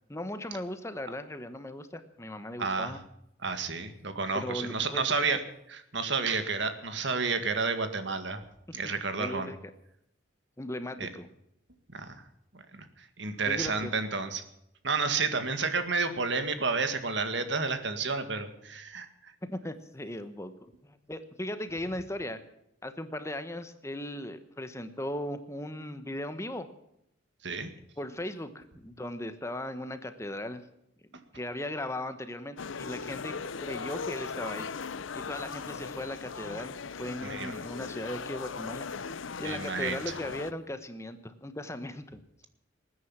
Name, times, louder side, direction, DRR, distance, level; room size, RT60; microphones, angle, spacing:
voice 1, 0.1-3.0 4.3-5.1 9.2-9.6 10.6-11.3 13.4-13.9 19.4-22.4 22.8-26.7 28.0-30.6 31.3-33.3 33.6-34.7 35.1-38.9 39.4-42.4, left 1 dB, 15° left, 10 dB, 1.0 m, -37 dB
voice 2, 2.6-2.9 3.4-5.4 5.7-8.4 8.7-9.5 11.0-11.1 11.9-12.1 12.7-12.9 13.2-14.4 14.8-19.1 27.4-27.7 37.2-37.5 39.4-40.0, right 4 dB, 65° right, 9 dB, 1.9 m, -30 dB
sound 1, 32.6-40.5, left 5 dB, 80° left, 0.7 m, -38 dB
20.0 x 9.8 x 7.3 m, 0.78 s
head